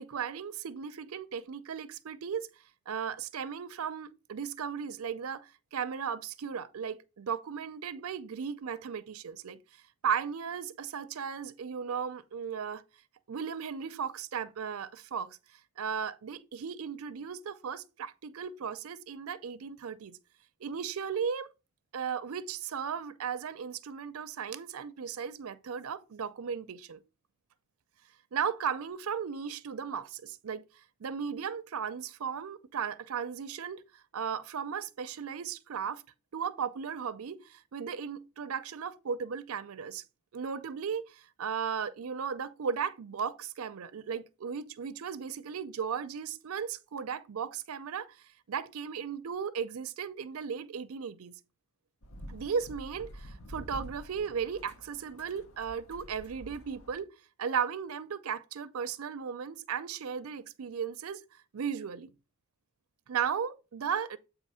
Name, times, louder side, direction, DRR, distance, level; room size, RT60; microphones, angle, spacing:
voice 1, 0.0-2.5 2.9-9.6 10.0-12.8 13.3-15.4 15.8-20.2 20.6-21.5 21.9-27.0 28.3-30.6 31.0-33.8 34.1-36.0 36.3-40.0 40.3-51.3 52.3-57.1 57.4-61.2 61.5-62.1 63.1-64.2, right 7 dB, 80° right, 0.5 m, -36 dB
sound 1, 52.0-57.0, equal, 70° left, 0.9 m, -48 dB
8.2 x 2.9 x 5.5 m
head